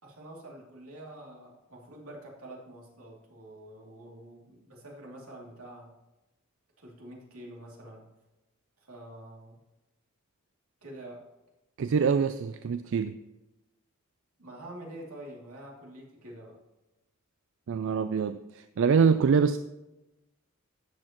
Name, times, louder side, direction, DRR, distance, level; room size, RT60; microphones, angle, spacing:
voice 1, 0.0-5.9 6.8-8.1 8.8-9.6 10.8-11.2 14.4-16.6, right 1 dB, 85° right, -2 dB, 2.6 m, -46 dB
voice 2, 11.8-13.2 17.7-19.6, right 6 dB, 60° right, 11 dB, 0.4 m, -25 dB
13.0 x 8.4 x 3.0 m, 1.0 s
head